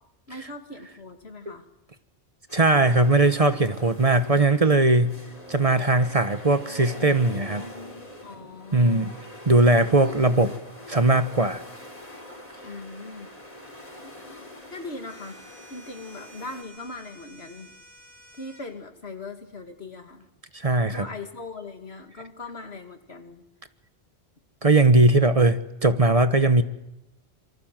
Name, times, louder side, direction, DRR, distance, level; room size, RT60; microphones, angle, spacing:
voice 1, 0.3-1.7 8.2-9.1 12.6-13.3 14.0-14.1 14.7-15.4 15.7-17.7 18.4-20.2 20.9-23.4, left 3 dB, 75° left, 6 dB, 2.6 m, -40 dB
sound 1, 2.5-16.6, left 1 dB, 35° left, 4.1 m, -43 dB
voice 2, 2.5-5.2 5.5-7.7 8.7-9.1 9.5-10.5 10.9-11.6 20.5-21.1 24.6-26.6, right 2 dB, 35° right, 11 dB, 1.2 m, -19 dB
sound 2, 15.1-18.7, right 1 dB, 65° right, 6.2 m, -51 dB
27.0 x 25.0 x 7.6 m, 0.89 s
omnidirectional pair, 1.1 m